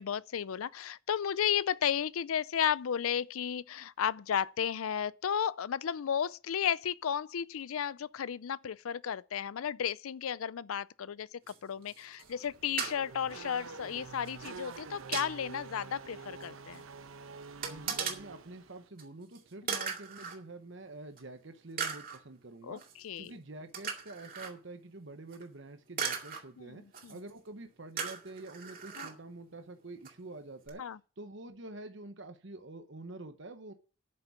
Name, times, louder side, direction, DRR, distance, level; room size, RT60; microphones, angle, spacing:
voice 1, 0.0-11.3 11.6-16.8 22.6-22.8 23.0-23.3 26.6-27.2 29.0-29.1 30.8-31.0, left 8 dB, 85° left, 0.4 m, -33 dB
sound 1, 11.5-11.6 11.8-12.5 12.8-13.0 14.3-14.4 14.7-15.3 16.4-16.5 16.7-16.8 17.6-18.2 19.0-19.1 19.3-19.4 19.7-20.4 21.2-21.3 21.8-22.2 22.8-22.9 23.7-24.5 25.3-25.4 26.0-26.4 26.9-27.3 28.0-29.1 30.1-30.2 30.7-30.8, right 6 dB, 45° right, 2.2 m, -37 dB
Race car auto racing / Accelerating revving vroom, 12.2-18.9, right 4 dB, 75° right, 0.9 m, -47 dB
voice 2, 17.6-22.8 23.2-30.8 31.2-33.7, right 2 dB, 60° right, 1.0 m, -47 dB
8.6 x 6.7 x 8.3 m
head